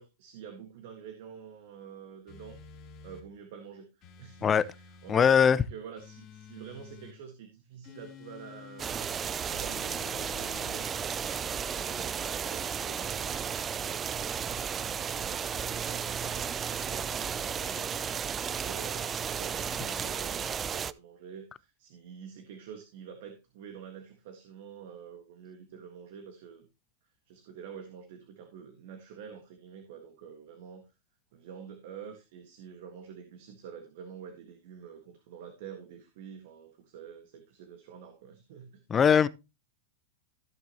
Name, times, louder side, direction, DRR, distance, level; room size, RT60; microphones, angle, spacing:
voice 1, 0.0-2.6 3.0-14.1 14.8-26.7 27.3-30.8 31.3-38.8, right 7 dB, 65° right, 1.6 m, -48 dB
sound 1, 2.3-3.3 4.0-5.2 6.0-7.2 7.8-8.9 9.7-10.8, left 7 dB, 40° left, 3.0 m, -50 dB
voice 2, 5.1-5.6 38.9-39.3, left 7 dB, 25° left, 0.6 m, -21 dB
sound 2, 8.8-20.9, right 7 dB, 25° right, 0.4 m, -34 dB
15.0 x 6.1 x 2.9 m
hypercardioid pair, 110°, 0 cm